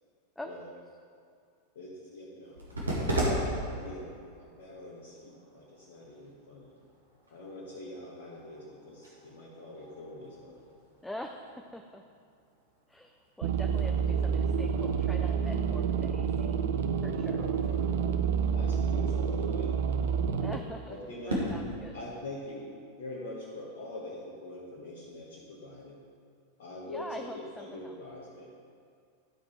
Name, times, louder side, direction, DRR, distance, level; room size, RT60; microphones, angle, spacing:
voice 1, 1.7-2.6 3.6-4.1 4.4-6.7 7.3-10.7 17.2-17.9 18.5-19.7 20.9-21.4 21.9-22.7 23.0-26.0 26.6-28.5, left 1 dB, 55° left, -5 dB, 1.4 m, -44 dB
sound 1, 2.4-21.5, right 1 dB, 75° right, 1.9 m, -40 dB
voice 2, 11.0-12.0 12.9-16.6 17.0-17.4 20.4-21.0 21.3-21.9 26.9-28.0, left 1 dB, 5° left, 4 dB, 0.4 m, -44 dB
sound 2, 13.4-20.6, right 7 dB, 55° right, 0.5 m, -28 dB
12.5 x 5.0 x 4.7 m, 2.3 s
figure-of-eight pair, 90°, 0 cm